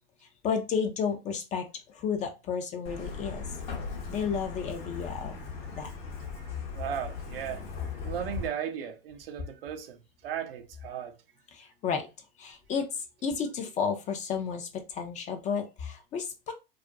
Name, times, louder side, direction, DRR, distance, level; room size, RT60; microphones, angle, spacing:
voice 1, 0.4-3.4 4.1-5.9 11.5-12.1 12.4-16.5, left 6 dB, 25° left, 0.4 m, -32 dB
Truck, 2.8-8.5, left 5 dB, 50° left, 0.9 m, -39 dB
voice 2, 6.7-7.6 8.0-10.0 10.2-11.1, right 9 dB, 75° right, 0.5 m, -36 dB
2.3 x 2.1 x 2.5 m
hypercardioid pair, 100°, 30 cm